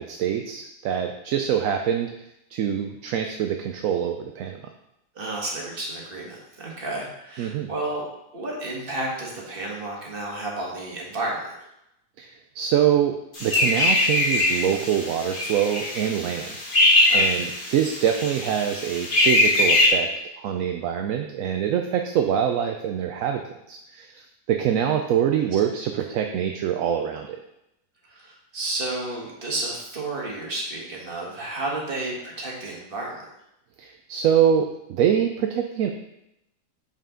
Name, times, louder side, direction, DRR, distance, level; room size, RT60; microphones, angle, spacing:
voice 1, 0.0-2.1 2.5-4.7 7.4-7.7 12.2-16.6 17.1-20.1 20.4-27.4 33.8-35.9, right 9 dB, 70° right, 4 dB, 0.8 m, -25 dB
voice 2, 5.1-8.1 8.3-11.5 17.1-17.3 28.1-33.2, right 2 dB, 35° right, -2 dB, 1.7 m, -31 dB
sound 1, 13.3-19.9, left 2 dB, 35° left, 1.6 m, -22 dB
6.6 x 5.5 x 3.7 m, 0.84 s
omnidirectional pair, 1.7 m